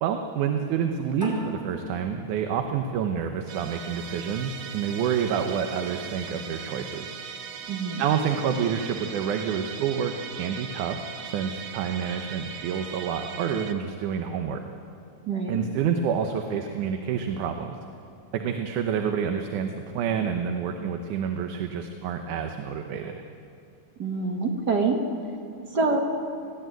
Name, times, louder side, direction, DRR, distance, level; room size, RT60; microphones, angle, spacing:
voice 1, 0.0-7.2 8.0-10.1 10.4-14.6 15.5-17.8 18.3-23.2, right 7 dB, 85° right, 5 dB, 2.4 m, -28 dB
sound 1, 1.2-4.4, equal, 15° left, 4.1 m, -36 dB
Musical instrument, 3.5-13.7, right 6 dB, 65° right, 1.9 m, -39 dB
voice 2, 7.7-8.1 15.3-15.7 24.0-25.0 25.7-26.0, right 4 dB, 45° right, 2 dB, 1.5 m, -25 dB
19.0 x 15.0 x 9.2 m, 2.5 s
omnidirectional pair, 3.5 m